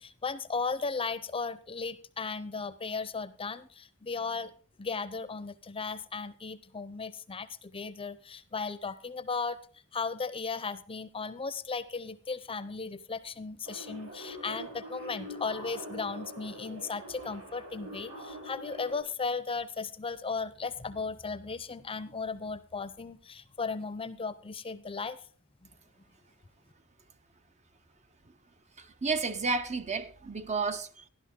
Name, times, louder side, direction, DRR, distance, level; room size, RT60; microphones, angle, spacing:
voice 1, 0.0-4.5 4.8-9.6 9.9-25.2, left 4 dB, 25° left, 0.7 m, -36 dB
sound 1, 13.6-19.0, equal, 60° right, 4.4 m, -44 dB
voice 2, 28.8-31.1, right 4 dB, 30° right, 0.7 m, -32 dB
13.0 x 11.5 x 3.6 m
head